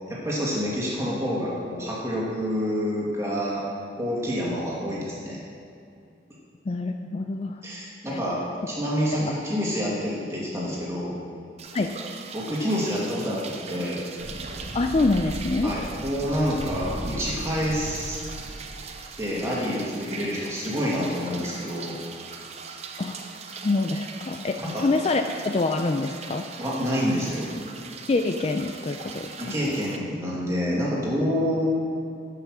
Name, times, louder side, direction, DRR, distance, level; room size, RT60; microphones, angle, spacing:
voice 1, 0.1-3.6 4.0-5.4 7.6-8.4 8.7-11.1 12.3-14.0 15.6-18.2 19.2-22.0 24.6-24.8 26.6-27.5 29.4-31.7, equal, 15° right, -6 dB, 2.2 m, -27 dB
voice 2, 6.7-7.6 8.1-8.2 9.1-9.4 11.7-11.9 14.7-15.7 23.0-23.2 23.6-26.5 28.1-29.5, left 3 dB, 35° left, 5 dB, 0.4 m, -26 dB
sound 1, 11.6-30.0, right 5 dB, 35° right, 0.6 m, -41 dB
sound 2, 14.2-19.6, right 1 dB, 90° right, 1.4 m, -37 dB
12.0 x 5.8 x 6.1 m, 2.4 s
head